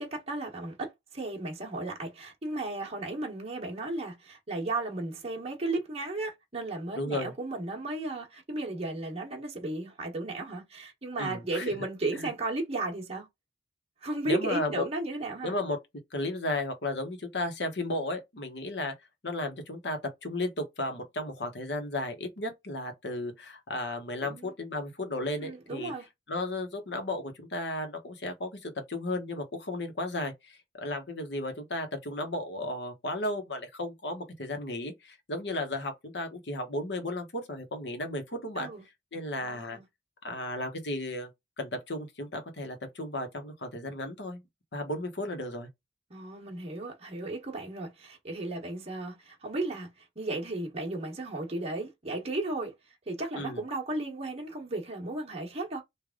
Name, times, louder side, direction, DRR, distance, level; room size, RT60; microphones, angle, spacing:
voice 1, 0.0-13.3 14.0-15.6 24.2-24.5 25.4-26.1 38.5-38.8 39.4-39.8 46.1-55.8, right 2 dB, 35° right, 1.1 m, -35 dB
voice 2, 6.9-7.3 11.2-11.9 12.2-12.3 14.2-14.8 15.4-15.8 16.1-18.9 19.2-25.9 26.3-38.7 39.1-39.8 40.2-41.3 41.6-44.4 44.7-45.7 53.4-53.6, left 1 dB, 75° left, 1.1 m, -34 dB
3.3 x 2.5 x 3.7 m
head